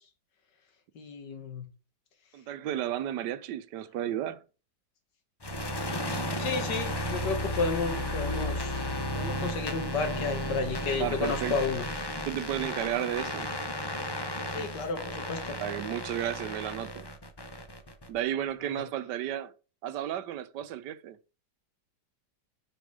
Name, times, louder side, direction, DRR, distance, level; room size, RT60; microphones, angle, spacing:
voice 1, 1.0-1.7 6.4-8.8 9.1-11.9 14.5-15.6 18.7-18.8, left 4 dB, 90° left, 2.1 m, -32 dB
voice 2, 2.3-4.4 11.0-11.6 12.2-13.5 15.6-17.1 18.1-19.5 19.8-21.2, right 11 dB, 85° right, 1.3 m, -33 dB
sound 1, 5.4-18.2, equal, 25° left, 0.6 m, -34 dB
6.8 x 5.2 x 5.0 m
omnidirectional pair, 1.8 m